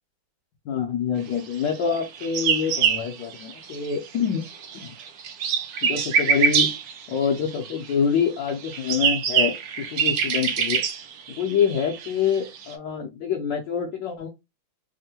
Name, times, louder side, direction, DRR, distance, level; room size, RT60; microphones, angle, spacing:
voice 1, 0.7-4.4 4.7-4.9 5.8-6.7 7.1-10.8 11.3-14.3, left 7 dB, 70° left, 0 dB, 1.2 m, -26 dB
sound 1, 1.9-4.1 4.3-7.9 8.5-12.7, right 7 dB, 90° right, 0.8 m, -25 dB
3.5 x 2.1 x 2.7 m, 0.23 s
omnidirectional pair, 2.3 m